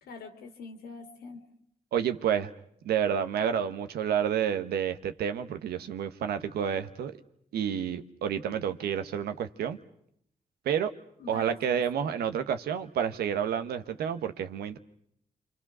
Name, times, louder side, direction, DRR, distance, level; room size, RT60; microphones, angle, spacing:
voice 1, 0.0-1.4 11.2-11.8, left 4 dB, 85° left, 6 dB, 2.8 m, -44 dB
voice 2, 1.9-2.5 2.8-7.2 7.5-9.8 10.6-10.9 11.3-14.8, right 8 dB, 90° right, 10 dB, 1.1 m, -29 dB
29.0 x 25.0 x 6.1 m, 0.71 s
supercardioid pair, 40°, 16 cm